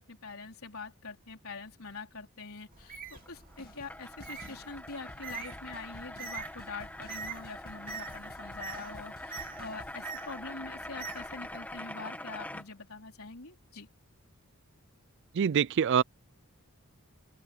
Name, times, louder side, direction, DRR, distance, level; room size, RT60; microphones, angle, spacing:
voice 1, 0.0-13.9, left 4 dB, 70° left, 4.4 m, -44 dB
Bird, 2.7-11.8, right 5 dB, 40° right, 2.9 m, -46 dB
sound 1, 3.2-3.3 3.6-3.9 4.2-10.0, left 1 dB, 45° left, 2.0 m, -53 dB
sound 2, 3.2-12.6, left 1 dB, 5° left, 1.5 m, -44 dB
voice 2, 15.3-16.0, right 7 dB, 55° right, 0.4 m, -25 dB
open air
head